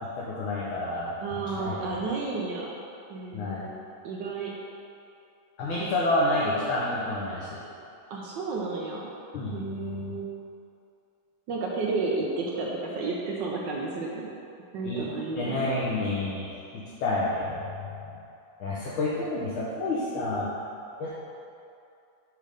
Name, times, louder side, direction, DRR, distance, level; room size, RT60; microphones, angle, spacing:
voice 1, 0.0-1.1 1.6-1.8 3.3-3.7 5.6-7.6 9.3-9.5 14.8-15.1 15.4-16.5 16.7-17.6 18.1-18.2 18.6-20.5 21.0-21.1, left 2 dB, 75° left, -7 dB, 1.5 m, -29 dB
voice 2, 1.2-2.7 3.1-4.5 8.1-9.1 9.5-10.3 11.5-14.2 14.7-15.7, right 3 dB, 70° right, -2 dB, 1.1 m, -32 dB
6.6 x 3.4 x 5.0 m, 2.6 s
omnidirectional pair, 2.4 m